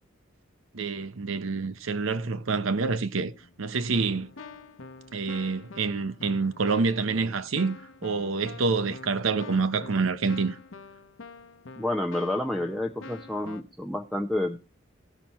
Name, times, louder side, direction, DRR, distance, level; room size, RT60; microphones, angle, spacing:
voice 1, 0.7-3.3 3.6-4.3 5.1-10.6, right 4 dB, 85° right, 0.8 m, -27 dB
Keyboard (musical), 3.4-3.6 3.9-13.6, left 3 dB, 75° left, 0.9 m, -46 dB
voice 2, 11.8-14.6, left 1 dB, ahead, 0.6 m, -29 dB
16.5 x 6.0 x 4.1 m
head